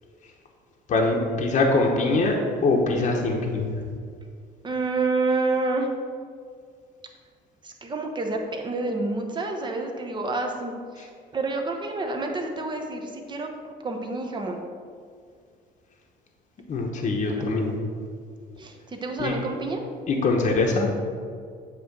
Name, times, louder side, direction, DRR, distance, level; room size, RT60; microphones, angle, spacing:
voice 1, 0.9-2.4 2.6-3.7 16.7-17.7 19.2-19.3 20.1-20.9, left 3 dB, 45° left, 1 dB, 0.9 m, -23 dB
voice 2, 4.6-5.9 7.6-14.6 17.4-17.5 18.6-19.9, right 3 dB, 25° right, 3 dB, 0.9 m, -29 dB
8.1 x 3.1 x 6.0 m, 2.1 s
cardioid pair, 110°, 17 cm